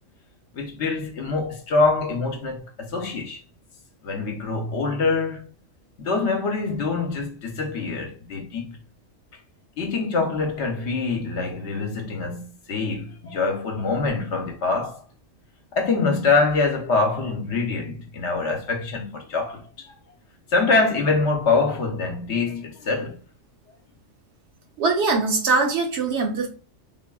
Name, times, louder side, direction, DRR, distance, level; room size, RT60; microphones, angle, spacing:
voice 1, 0.5-3.4 4.0-5.5 6.0-8.7 9.8-15.0 15.7-19.9 20.5-23.2, left 3 dB, 65° left, 0.9 m, -24 dB
voice 2, 24.8-26.5, right 4 dB, 65° right, 0.9 m, -22 dB
3.5 x 2.0 x 2.2 m
omnidirectional pair, 1.3 m